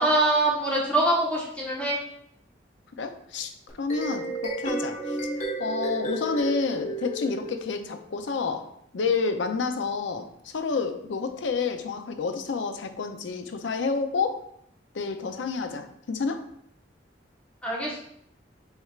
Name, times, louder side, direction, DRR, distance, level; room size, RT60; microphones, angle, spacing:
voice 1, 0.0-2.0 17.6-18.0, right 1 dB, 5° left, -5 dB, 1.2 m, -24 dB
voice 2, 3.0-3.5 3.8-5.2 5.6-14.4 14.9-16.5, left 4 dB, 80° left, 8 dB, 0.5 m, -29 dB
sound 1, 3.7-8.0, right 1 dB, 40° left, 1.1 m, -32 dB
6.2 x 3.3 x 2.4 m, 0.70 s
head